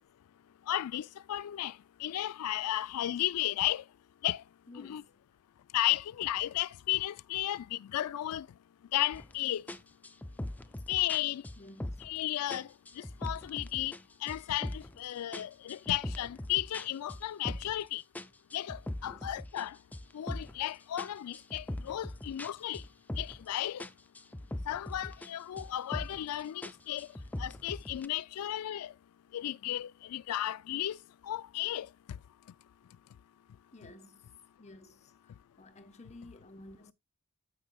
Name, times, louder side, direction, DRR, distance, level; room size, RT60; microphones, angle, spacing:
voice 1, 0.7-3.8 4.2-4.4 4.7-5.0 5.7-8.5 8.9-9.6 10.9-11.4 12.0-12.7 13.0-13.9 14.2-18.0 18.5-19.8 20.1-22.8 23.2-23.8 24.7-27.1 27.4-28.9 29.3-31.0 31.2-31.9, left 13 dB, 80° left, 0.3 m, -34 dB
voice 2, 4.7-5.2 11.6-12.1 19.0-19.3 33.7-36.9, left 2 dB, 30° left, 0.9 m, -53 dB
sound 1, 9.1-9.3 9.7-12.2 12.5-14.0 14.3-15.0 15.3-17.8 18.2-20.6 21.0-23.5 23.8-25.3 25.6-26.3 26.6-28.1, left 1 dB, 5° left, 0.3 m, -41 dB
14.5 x 4.9 x 2.3 m
head